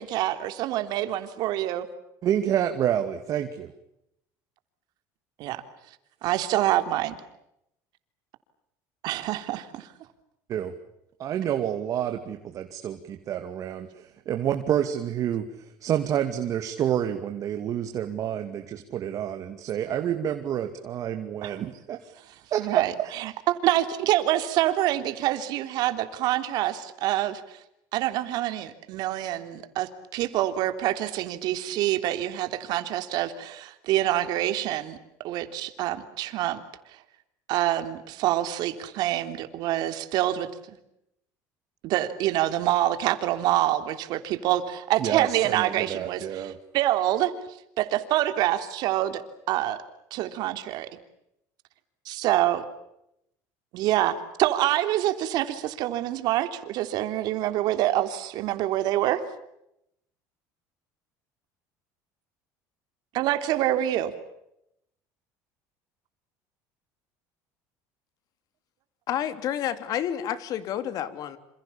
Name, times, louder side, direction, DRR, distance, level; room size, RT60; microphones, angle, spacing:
voice 1, 0.0-1.9 5.4-5.6 6.2-7.2 9.0-9.9 21.4-21.5 22.6-27.6 27.9-35.0 35.2-36.6 37.5-40.5 41.8-47.3 47.8-49.2 49.5-49.8 50.1-50.9 52.0-52.6 53.7-59.2 63.1-64.1, right 14 dB, 65° right, 9 dB, 3.4 m, -26 dB
voice 2, 2.2-3.7 10.5-10.7 11.2-22.0 22.5-23.1 45.0-46.5, right 10 dB, 45° right, 7 dB, 2.5 m, -28 dB
voice 3, 69.1-71.4, left 10 dB, 55° left, 12 dB, 3.4 m, -29 dB
28.0 x 27.5 x 7.2 m, 0.81 s
cardioid pair, 120°, 8 cm